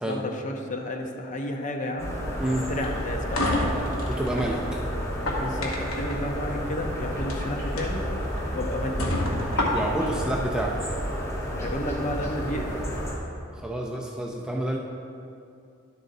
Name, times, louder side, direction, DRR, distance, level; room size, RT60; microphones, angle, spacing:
voice 1, 0.1-2.1 2.5-3.7 5.4-8.0 8.5-9.3 11.5-12.8, left 1 dB, 35° left, 3 dB, 0.7 m, -32 dB
sound 1, 2.0-13.1, equal, 15° left, 1.0 m, -31 dB
sound 2, 2.8-4.5 5.1-6.1 7.1-7.4 7.8-7.9 8.4-8.5 9.0-10.1, left 1 dB, 85° left, 1.2 m, -28 dB
voice 2, 4.1-4.8 9.7-10.7 13.5-14.8, right 1 dB, 5° right, -1 dB, 0.4 m, -29 dB
10.5 x 7.7 x 2.7 m, 2.5 s
head